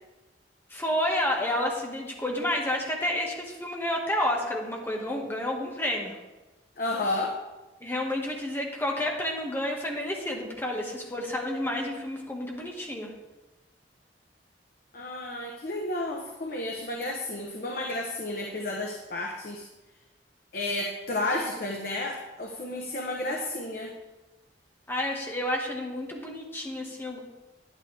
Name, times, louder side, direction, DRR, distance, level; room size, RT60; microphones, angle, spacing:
voice 1, 0.7-6.2 7.8-13.1 24.9-27.2, left 1 dB, 15° left, -1 dB, 1.7 m, -30 dB
voice 2, 6.8-7.3 14.9-19.7 20.5-23.9, left 2 dB, 55° left, 0 dB, 1.1 m, -32 dB
11.5 x 10.0 x 3.5 m, 1.1 s
head